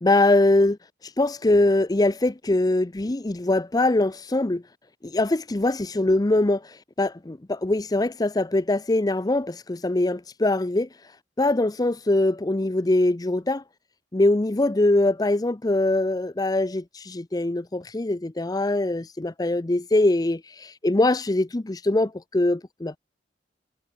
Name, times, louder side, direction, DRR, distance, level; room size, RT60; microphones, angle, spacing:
voice 1, 0.0-0.8 1.0-4.6 5.0-10.9 11.4-13.6 14.1-23.0, left 2 dB, 20° left, 0.6 m, -22 dB
head